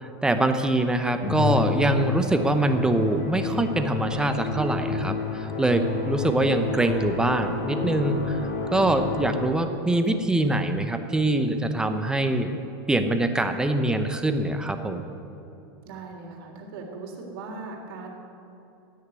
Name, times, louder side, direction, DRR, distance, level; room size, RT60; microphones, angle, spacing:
voice 1, 0.0-8.4 8.7-12.6 12.9-15.0, right 1 dB, 5° right, 7 dB, 0.7 m, -24 dB
Musical instrument, 1.2-9.8, left 5 dB, 45° left, 2.3 m, -30 dB
voice 2, 15.8-18.1, right 3 dB, 70° right, 1 dB, 3.4 m, -39 dB
16.5 x 6.6 x 9.6 m, 2.9 s
supercardioid pair, 150°, 13 cm